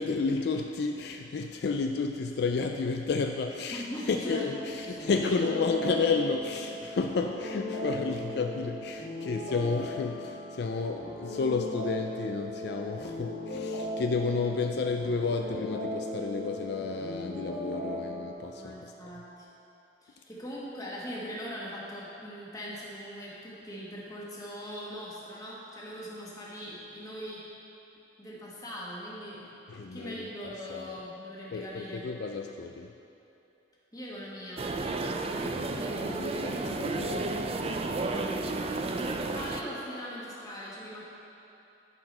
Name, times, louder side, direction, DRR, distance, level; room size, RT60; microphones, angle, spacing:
voice 1, 0.0-18.9 29.7-30.9 31.5-32.9 35.3-37.8, left 4 dB, 65° left, 4 dB, 0.4 m, -32 dB
voice 2, 3.7-5.3 8.1-8.3 18.5-19.5 20.0-27.4 28.2-32.0 33.9-34.7 39.3-41.0, equal, 20° left, -6 dB, 1.7 m, -41 dB
sound 1, 4.2-18.3, left 1 dB, 80° left, 1.4 m, -38 dB
sound 2, 34.6-39.6, right 2 dB, 35° right, 0.4 m, -32 dB
11.0 x 4.8 x 5.4 m, 2.8 s
head